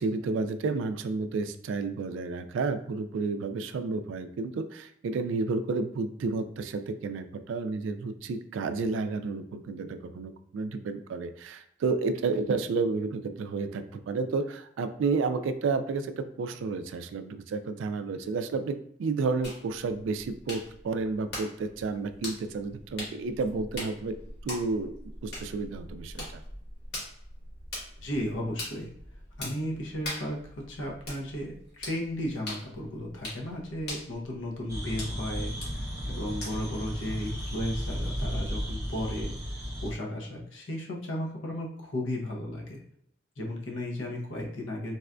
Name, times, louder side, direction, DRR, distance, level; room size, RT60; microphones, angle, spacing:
voice 1, 0.0-24.1 24.4-24.9 25.2-26.4, right 4 dB, 80° right, 9 dB, 0.3 m, -31 dB
sound 1, 19.4-36.8, left 1 dB, 60° left, 1.3 m, -43 dB
voice 2, 28.0-28.9 29.4-42.8 43.4-44.9, left 1 dB, 80° left, 0 dB, 0.7 m, -35 dB
sound 2, 34.7-39.9, equal, 15° right, 0.7 m, -34 dB
4.0 x 2.2 x 2.4 m, 0.70 s
head